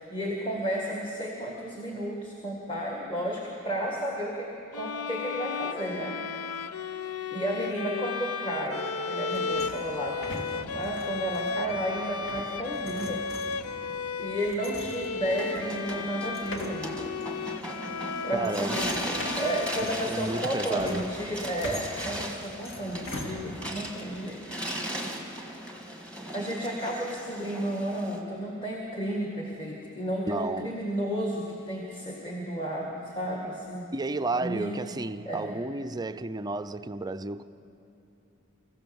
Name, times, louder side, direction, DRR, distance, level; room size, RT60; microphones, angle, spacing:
voice 1, 0.0-4.5 4.7-6.2 6.7-13.2 13.8-17.0 17.9-24.4 25.2-25.5 26.3-33.9 34.4-34.8 35.3-35.6, right 1 dB, 25° left, 1.9 m, -33 dB
sound 1, 4.7-20.4, left 5 dB, 90° left, 0.6 m, -35 dB
sound 2, 9.3-23.9, left 1 dB, 60° left, 2.3 m, -43 dB
sound 3, 15.2-28.2, equal, 5° left, 1.7 m, -37 dB
voice 2, 18.3-18.8 20.1-21.1 30.3-30.8 33.9-37.4, right 2 dB, 20° right, 0.5 m, -32 dB
24.5 x 15.0 x 7.1 m
head